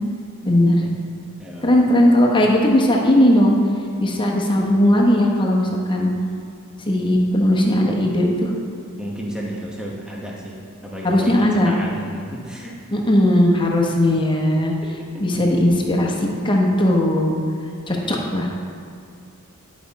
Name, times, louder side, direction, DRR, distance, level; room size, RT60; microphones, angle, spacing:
voice 1, 0.4-0.8 1.6-3.5 4.0-6.1 6.9-8.5 11.0-11.7 12.9-14.7 15.2-17.4 17.9-18.5, left 1 dB, 20° left, -1 dB, 1.0 m, -17 dB
voice 2, 1.4-1.7 9.0-10.6 10.8-12.7 15.1-15.2, equal, 5° right, -3 dB, 1.0 m, -32 dB
11.0 x 5.2 x 4.1 m, 2.4 s
head